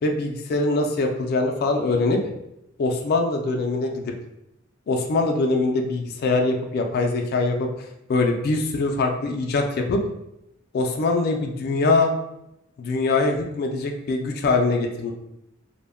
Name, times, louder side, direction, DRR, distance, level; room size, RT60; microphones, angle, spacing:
voice 1, 0.0-2.2 2.8-4.0 4.9-7.7 8.1-10.0 10.7-12.1 12.8-15.1, left 3 dB, 50° left, 3 dB, 0.3 m, -23 dB
2.1 x 2.1 x 3.4 m, 0.84 s
head